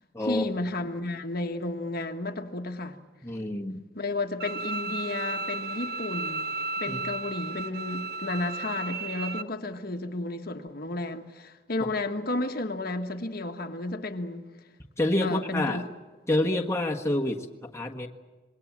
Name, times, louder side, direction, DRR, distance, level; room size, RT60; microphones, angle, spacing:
voice 1, 0.2-3.0 3.9-6.5 6.8-14.4 15.2-15.8, left 2 dB, 55° left, 1.4 m, -32 dB
voice 2, 3.2-3.8 6.9-7.0 15.0-15.8 16.3-18.1, left 1 dB, 15° left, 1.5 m, -28 dB
Bowed string instrument, 4.4-9.4, right 3 dB, 60° right, 0.9 m, -34 dB
26.0 x 21.0 x 7.4 m
head